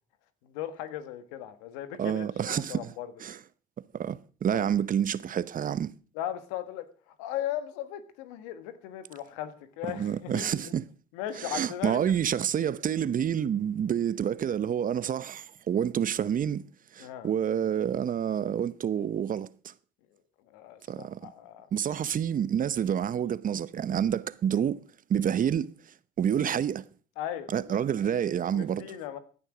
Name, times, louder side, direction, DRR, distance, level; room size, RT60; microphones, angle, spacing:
voice 1, 0.4-3.1 4.5-4.6 6.1-10.7 11.1-12.0 17.0-17.3 20.5-21.7 27.2-27.9 28.5-29.2, left 11 dB, 80° left, 1.6 m, -37 dB
voice 2, 2.0-2.9 3.2-3.4 3.9-5.9 9.9-10.8 11.4-16.6 16.9-19.7 20.9-21.3 21.7-24.8 25.1-25.7 26.2-26.8 27.5-28.8, right 9 dB, 45° right, 0.9 m, -28 dB
16.0 x 10.0 x 5.0 m
hypercardioid pair, 60°, 19 cm